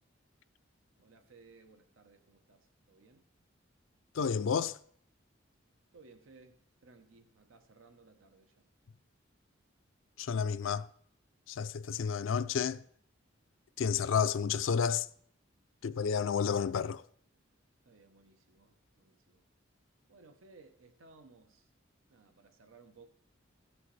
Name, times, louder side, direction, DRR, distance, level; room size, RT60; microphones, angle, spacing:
voice 1, 1.0-3.3 5.9-8.6 17.8-19.4 20.1-21.7 22.1-23.1, right 3 dB, 85° right, 0.8 m, -60 dB
voice 2, 4.1-4.8 10.2-10.9 11.5-12.9 13.8-15.1 15.8-17.0, left 6 dB, 75° left, 0.4 m, -31 dB
16.5 x 6.2 x 3.2 m
head